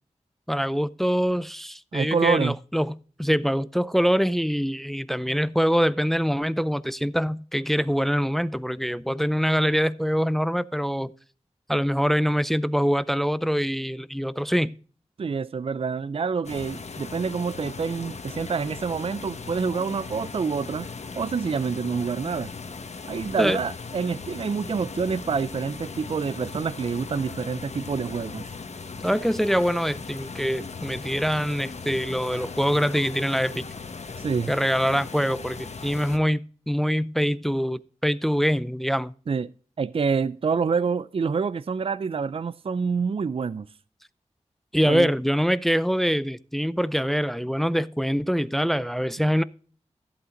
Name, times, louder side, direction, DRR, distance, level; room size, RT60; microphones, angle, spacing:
voice 1, 0.5-11.1 11.7-14.7 23.4-23.6 29.0-33.7 34.5-39.1 44.7-49.4, equal, ahead, 0.5 m, -24 dB
voice 2, 1.9-2.6 15.2-20.9 21.2-22.5 23.1-28.5 34.2-34.5 39.3-39.5 39.8-43.7 44.9-45.1, right 5 dB, 50° right, 0.4 m, -27 dB
sound 1, 16.4-36.2, left 4 dB, 65° left, 1.4 m, -38 dB
14.5 x 8.1 x 3.8 m
wide cardioid pair, 85°, 12 cm